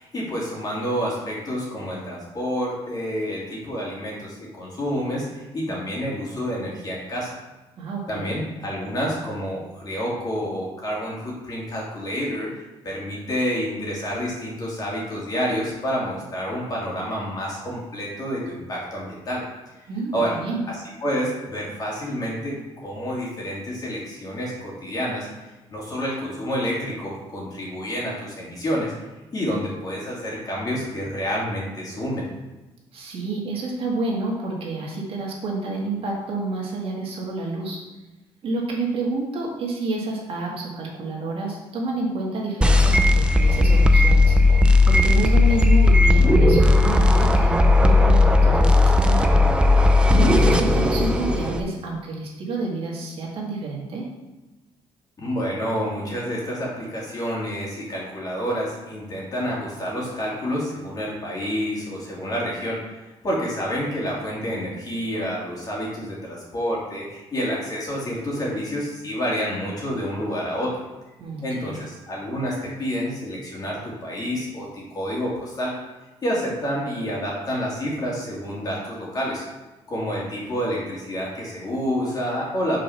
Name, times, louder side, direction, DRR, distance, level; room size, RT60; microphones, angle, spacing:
voice 1, 0.0-7.4 8.1-12.5 12.8-19.4 20.1-20.4 20.7-25.3 25.7-28.9 29.3-32.2 55.2-62.8 63.2-70.7 71.4-75.8 76.2-79.4 79.9-82.8, equal, 35° left, -4 dB, 2.5 m, -28 dB
voice 2, 7.8-8.3 19.9-20.6 32.9-37.8 38.4-49.3 50.1-54.1 71.2-71.8, right 2 dB, 55° right, -3 dB, 1.9 m, -29 dB
sound 1, 42.6-51.6, left 2 dB, 10° right, 0.5 m, -16 dB
6.3 x 4.6 x 5.7 m, 1.1 s
cardioid pair, 135°, 11 cm